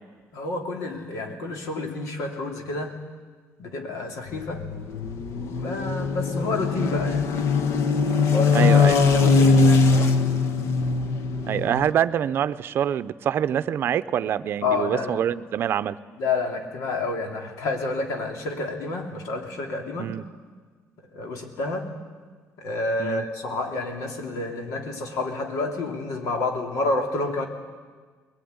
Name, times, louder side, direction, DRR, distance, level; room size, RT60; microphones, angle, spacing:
voice 1, 0.3-3.0 3.6-4.6 5.5-7.4 8.3-10.2 14.6-15.2 16.2-20.1 21.1-21.9 22.6-27.5, left 3 dB, 85° left, 4 dB, 3.1 m, -29 dB
sound 1, 4.3-11.9, left 4 dB, 60° left, 1.3 m, -21 dB
voice 2, 8.5-9.0 11.5-16.0 20.0-20.2 23.0-23.3, right 9 dB, 45° right, 13 dB, 0.6 m, -25 dB
21.5 x 19.5 x 9.6 m, 1.5 s
cardioid pair, 180°, 5 cm